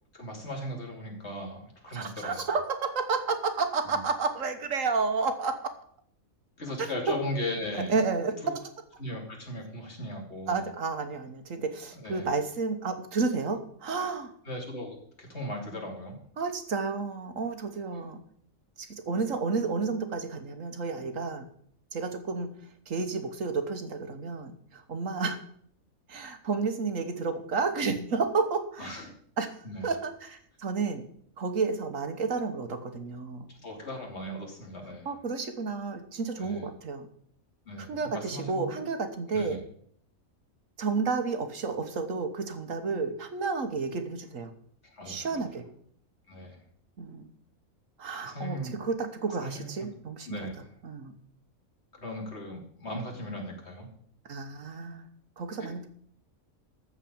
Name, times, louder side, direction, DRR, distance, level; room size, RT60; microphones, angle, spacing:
voice 1, 0.1-2.4 6.6-7.9 8.4-8.5 9.0-10.6 12.0-12.3 14.5-16.2 28.8-29.1 29.6-29.9 33.5-35.1 36.4-36.6 37.6-38.7 39.3-39.6 44.9-45.4 46.3-46.6 48.2-48.8 49.4-49.9 50.3-50.5 52.0-53.9 55.6-55.9, left 1 dB, 50° left, 0 dB, 3.2 m, -37 dB
voice 2, 1.9-5.5 6.8-6.9 7.9-8.6 10.5-14.3 16.4-18.2 18.8-21.4 21.9-25.4 26.1-29.0 29.4-31.1 31.4-33.5 35.0-37.1 37.8-39.6 40.8-44.5 45.0-45.6 47.0-47.3 48.0-50.5 50.8-51.1 54.2-55.1 55.4-55.9, right 4 dB, 65° right, 7 dB, 1.5 m, -31 dB
14.0 x 4.9 x 8.6 m, 0.63 s
omnidirectional pair, 1.5 m